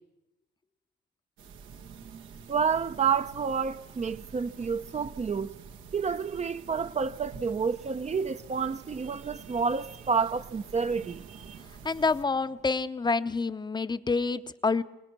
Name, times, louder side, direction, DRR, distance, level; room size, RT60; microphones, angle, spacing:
sound 1, 1.4-12.2, right 5 dB, 85° right, 2.0 m, -48 dB
voice 1, 2.5-5.5 5.9-11.6, right 6 dB, 35° right, 0.8 m, -29 dB
voice 2, 11.8-14.8, left 4 dB, 20° left, 0.9 m, -27 dB
25.5 x 19.5 x 6.2 m
cardioid pair, 90°, 20 cm